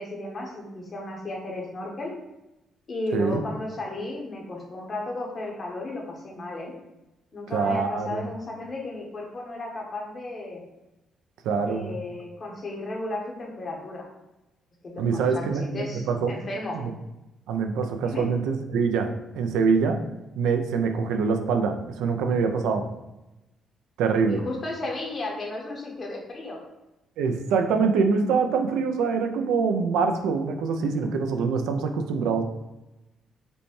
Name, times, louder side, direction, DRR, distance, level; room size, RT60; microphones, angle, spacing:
voice 1, 0.0-2.1 2.9-6.7 7.3-10.6 11.6-14.0 14.8-16.8 18.0-18.2 24.3-26.6, left 2 dB, 45° left, -1 dB, 1.1 m, -34 dB
voice 2, 7.5-8.3 11.4-12.0 15.0-16.3 16.7-16.9 17.5-19.1 19.3-20.0 20.4-22.9 24.0-24.4 27.2-32.4, right 5 dB, 90° right, 6 dB, 0.4 m, -24 dB
5.1 x 2.2 x 3.2 m, 0.97 s
cardioid pair, 90°, 0 cm